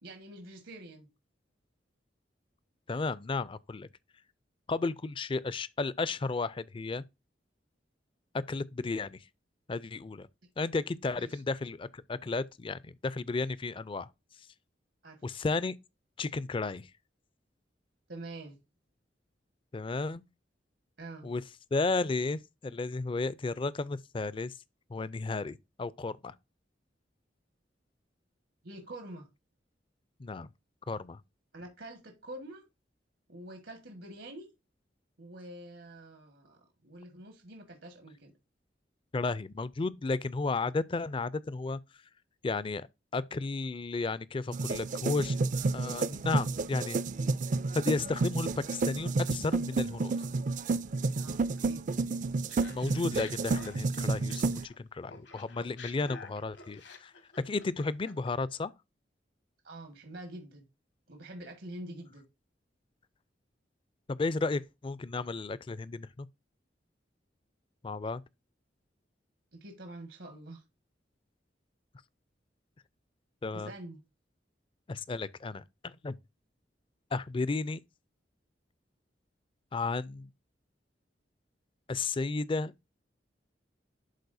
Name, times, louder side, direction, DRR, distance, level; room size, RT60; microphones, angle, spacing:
voice 1, 0.0-1.1 11.1-11.4 15.0-15.2 18.1-18.6 21.0-21.3 28.6-29.3 31.5-32.6 33.3-34.5 35.2-38.3 51.1-51.9 59.6-60.6 61.1-62.2 69.6-70.6 73.5-74.0, right 1 dB, 85° right, 1.7 m, -46 dB
voice 2, 2.9-3.9 4.7-7.0 8.5-9.2 9.7-10.3 10.6-14.1 15.2-15.8 16.2-16.9 19.7-20.2 21.2-21.4 21.7-24.5 24.9-26.3 30.2-30.5 30.9-31.2 39.1-41.8 42.4-42.9 43.1-45.4 45.7-47.0 47.7-50.3 52.7-57.1 57.5-58.7 64.1-66.3 67.8-68.2 73.4-73.7 74.9-76.1 77.1-77.8 79.7-80.3 81.9-82.7, left 3 dB, 30° left, 0.4 m, -33 dB
sound 1, 44.5-54.6, right 3 dB, 45° right, 0.4 m, -31 dB
Laughter, 52.5-54.8 55.1-58.3, left 4 dB, 75° left, 1.4 m, -49 dB
11.5 x 4.1 x 2.6 m
head